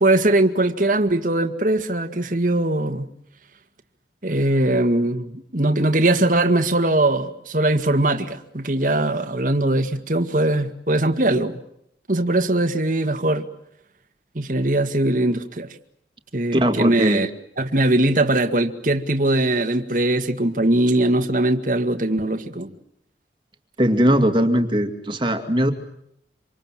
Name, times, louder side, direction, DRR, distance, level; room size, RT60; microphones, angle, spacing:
voice 1, 0.0-3.1 4.2-11.6 12.1-13.5 14.4-15.7 16.3-17.3 17.6-22.7, right 1 dB, 50° right, 2.0 m, -21 dB
voice 2, 16.5-17.2 23.8-25.7, equal, 30° right, 2.5 m, -19 dB
27.5 x 26.5 x 7.6 m
head